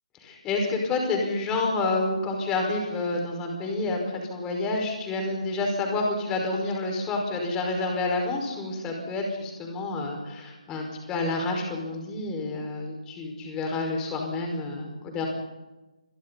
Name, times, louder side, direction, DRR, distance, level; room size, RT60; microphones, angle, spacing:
voice 1, 0.2-15.3, left 3 dB, 15° left, 2 dB, 5.3 m, -29 dB
28.5 x 23.5 x 4.2 m, 1.1 s
figure-of-eight pair, 150°, 4 cm